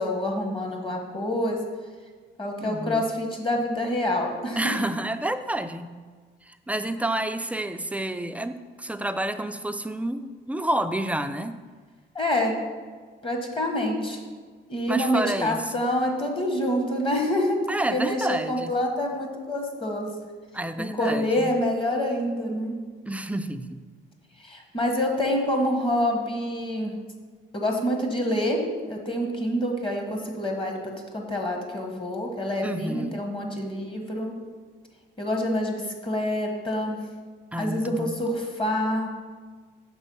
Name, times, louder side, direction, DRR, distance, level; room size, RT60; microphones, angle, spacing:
voice 1, 0.0-1.6 2.4-4.7 12.1-12.6 13.2-14.2 14.7-17.6 17.9-20.1 21.0-22.7 24.4-26.9 27.5-28.6 28.9-34.3 35.2-37.0 37.6-39.1, left 1 dB, 25° left, 2 dB, 1.2 m, -27 dB
voice 2, 2.6-3.1 4.6-6.0 6.4-11.6 14.9-15.9 17.7-18.7 20.5-21.5 23.1-23.8 32.6-33.3 37.5-38.2, right 1 dB, 5° right, 9 dB, 0.3 m, -29 dB
6.1 x 3.8 x 5.4 m, 1.5 s
cardioid pair, 90°, 20 cm